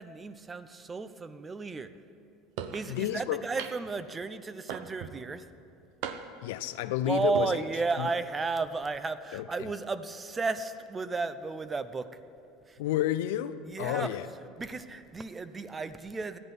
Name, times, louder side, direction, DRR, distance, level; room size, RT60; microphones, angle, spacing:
voice 1, 0.0-1.9 2.7-5.5 7.1-12.2 12.7-12.8 13.6-14.2 14.6-16.4, right 4 dB, 20° right, 13 dB, 0.6 m, -33 dB
sound 1, 2.6-2.9 3.6-4.0 4.7-5.2 6.0-6.5 7.2-7.5, right 8 dB, 70° right, 0.8 m, -38 dB
voice 2, 2.9-3.4 6.4-7.6 8.0-8.1 9.3-9.7 12.8-14.3, left 13 dB, 80° left, 13 dB, 0.5 m, -31 dB
14.0 x 9.9 x 5.4 m, 2.6 s
supercardioid pair, 110°, 0 cm